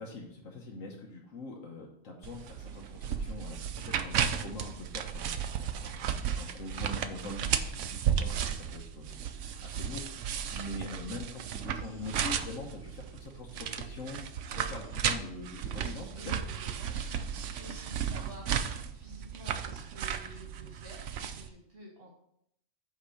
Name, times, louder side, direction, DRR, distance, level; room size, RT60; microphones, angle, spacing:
voice 1, 0.0-3.6 3.8-5.4 5.8-9.2 9.6-14.2 14.5-16.3, left 2 dB, 75° left, -2 dB, 1.4 m, -43 dB
sound 1, 2.2-21.5, right 8 dB, 70° right, 0.9 m, -34 dB
voice 2, 15.6-22.1, equal, 50° right, -2 dB, 1.7 m, -50 dB
8.3 x 3.6 x 5.7 m, 0.74 s
omnidirectional pair, 1.3 m